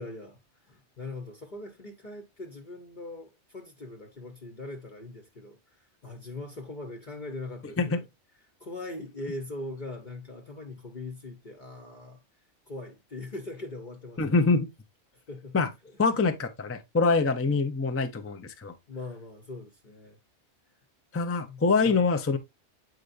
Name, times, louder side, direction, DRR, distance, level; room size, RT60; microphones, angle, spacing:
voice 1, 0.0-8.0 8.6-12.2 12.7-14.2 15.3-15.6 15.8-16.0 18.9-20.2 21.5-22.0, left 2 dB, 45° left, 1.0 m, -41 dB
voice 2, 14.2-14.7 15.5-15.7 16.0-18.7 21.1-22.4, left 4 dB, 15° left, 0.5 m, -25 dB
7.9 x 4.9 x 2.5 m
omnidirectional pair, 1.2 m